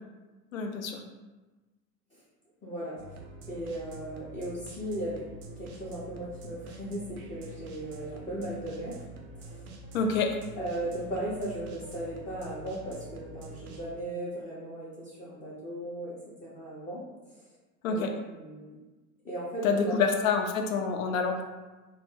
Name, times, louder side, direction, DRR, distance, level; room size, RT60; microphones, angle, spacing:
voice 1, 0.5-1.0 9.9-10.3 17.8-18.1 19.6-21.4, left 5 dB, 65° left, 4 dB, 0.6 m, -27 dB
voice 2, 2.6-3.2 3.5-5.2 5.6-8.9 9.3-9.7 10.6-16.1 16.4-17.0 17.3-17.4 17.9-18.8 19.2-20.0, right 1 dB, 15° left, -9 dB, 0.5 m, -37 dB
sound 1, 3.0-13.9, right 2 dB, 35° right, 0.5 m, -46 dB
2.2 x 2.0 x 3.6 m, 1.2 s
figure-of-eight pair, 90°, 45 cm